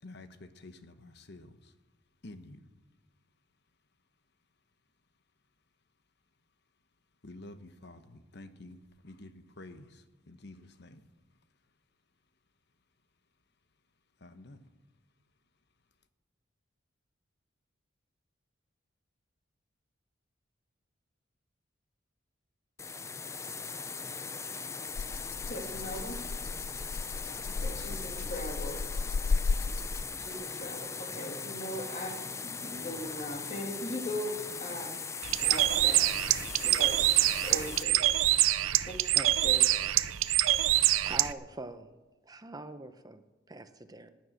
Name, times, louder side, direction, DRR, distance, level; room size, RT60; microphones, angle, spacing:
voice 1, 0.0-1.7 2.2-2.6 7.2-11.1 14.2-14.6, left 2 dB, 55° left, 10 dB, 1.0 m, -50 dB
sound 1, 22.8-37.8, left 5 dB, 15° left, 0.4 m, -40 dB
Rattle (instrument), 24.9-30.3, left 4 dB, 85° left, 0.5 m, -34 dB
voice 2, 25.5-26.2 27.6-28.8 30.2-34.3 34.6-35.0 35.4-36.0 36.6-37.1 37.4-38.0 38.8-38.9 39.4-39.6, left 1 dB, 35° left, 1 dB, 2.9 m, -39 dB
Bird, 35.2-41.3, right 14 dB, 85° right, 0.6 m, -25 dB
voice 3, 39.1-39.5 41.0-41.9 42.2-44.1, right 2 dB, 20° right, 9 dB, 0.8 m, -43 dB
17.0 x 10.5 x 6.5 m, 1.2 s
head